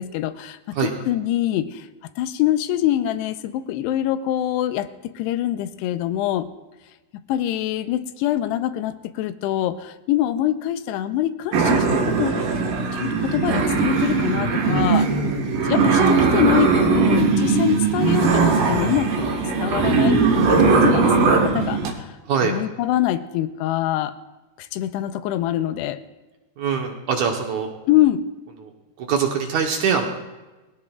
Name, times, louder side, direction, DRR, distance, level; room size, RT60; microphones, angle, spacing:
voice 1, 0.0-0.6 1.1-1.9 2.2-6.5 7.3-12.4 12.9-15.1 15.7-22.1 22.4-24.1 24.6-26.0 27.9-28.2, left 12 dB, 85° left, 10 dB, 2.7 m, -24 dB
sound 1, 11.5-21.9, right 4 dB, 60° right, 2.8 m, -19 dB
voice 2, 26.6-27.7 28.6-28.7 29.0-30.1, right 6 dB, 75° right, 2 dB, 1.7 m, -23 dB
22.0 x 16.0 x 2.4 m, 1.1 s
omnidirectional pair, 4.9 m